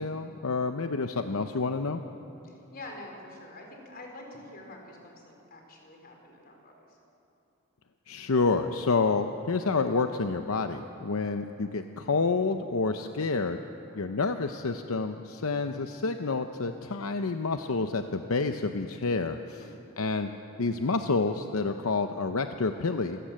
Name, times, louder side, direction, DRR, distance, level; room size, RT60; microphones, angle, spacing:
voice 1, 0.0-2.0 8.1-13.6 13.9-19.6 20.0-20.3 20.6-23.2, left 4 dB, 75° left, 7 dB, 0.8 m, -28 dB
voice 2, 2.4-7.0 13.9-14.2 19.6-19.8, left 2 dB, 45° left, 1 dB, 4.3 m, -47 dB
26.5 x 17.0 x 7.6 m, 2.9 s
head